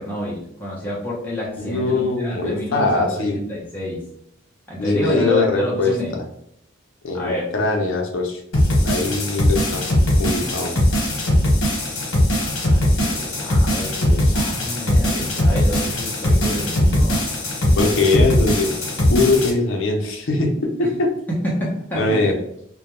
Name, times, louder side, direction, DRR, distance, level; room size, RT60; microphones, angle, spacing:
voice 1, 0.0-4.0 4.7-6.2 7.1-7.5 12.4-17.2 20.8-20.9 21.3-22.2, equal, 10° left, -6 dB, 0.5 m, -28 dB
voice 2, 1.6-3.4 4.8-5.9 7.0-8.4 8.8-9.8 10.2-10.7 14.2-14.4 17.8-18.7 19.1-21.1 22.0-22.3, left 3 dB, 65° left, 1 dB, 0.5 m, -21 dB
sound 1, 8.5-19.5, left 1 dB, 85° left, 0.8 m, -19 dB
2.2 x 2.1 x 2.9 m, 0.73 s
head